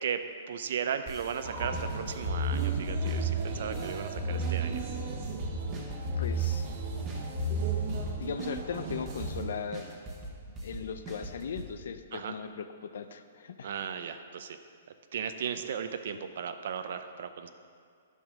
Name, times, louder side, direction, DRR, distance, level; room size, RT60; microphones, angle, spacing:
voice 1, 0.5-4.8 12.1-12.3 13.6-14.6 15.1-17.5, right 7 dB, 55° right, 9 dB, 0.7 m, -36 dB
sound 1, 1.1-1.4 1.7-4.1 4.4-6.8 7.1-9.4 9.7-11.7, right 1 dB, 15° right, 1.3 m, -43 dB
sound 2, 1.4-9.5, right 2 dB, 40° right, 1.3 m, -33 dB
voice 2, 6.2-6.7 8.1-9.9 10.5-13.7 14.0-14.2, left 6 dB, 65° left, 10 dB, 0.7 m, -38 dB
11.0 x 6.9 x 6.2 m, 2.2 s
hypercardioid pair, 170°, 0 cm